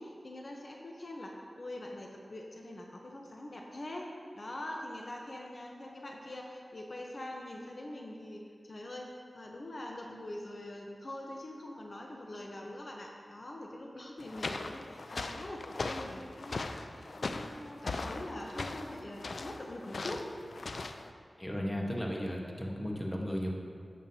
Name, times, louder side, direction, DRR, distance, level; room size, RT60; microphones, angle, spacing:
voice 1, 0.0-4.1 4.3-20.2, left 1 dB, 55° left, 0 dB, 0.9 m, -44 dB
sound 1, 14.2-21.1, left 3 dB, 75° left, 0.4 m, -39 dB
voice 2, 21.4-23.5, equal, 15° left, -1 dB, 1.3 m, -35 dB
11.0 x 7.3 x 2.8 m, 2.3 s
cardioid pair, 50°, 0 cm